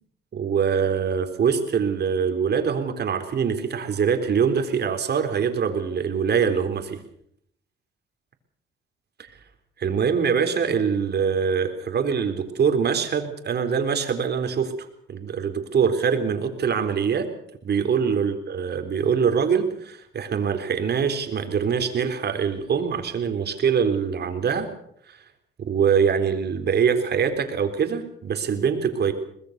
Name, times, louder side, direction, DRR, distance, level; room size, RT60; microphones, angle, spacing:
voice 1, 0.3-7.0 9.8-14.7 15.1-17.3 17.6-24.7 25.1-25.2 25.6-29.1, right 6 dB, 55° right, 7 dB, 3.9 m, -23 dB
23.5 x 20.0 x 6.7 m, 0.71 s
cardioid pair, 90°, 20 cm